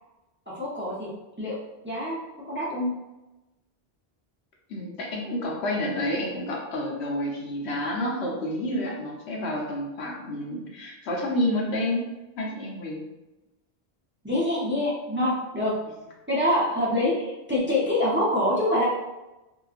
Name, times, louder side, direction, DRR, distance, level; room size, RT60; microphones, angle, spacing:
voice 1, 0.5-1.1 1.4-1.6 1.8-2.2 2.5-2.9 14.2-15.7 16.3-18.9, left 1 dB, 15° right, -7 dB, 0.4 m, -25 dB
voice 2, 4.7-12.0 12.4-13.0, left 1 dB, 90° left, -2 dB, 1.0 m, -29 dB
2.9 x 2.2 x 2.4 m, 1.0 s
omnidirectional pair, 1.1 m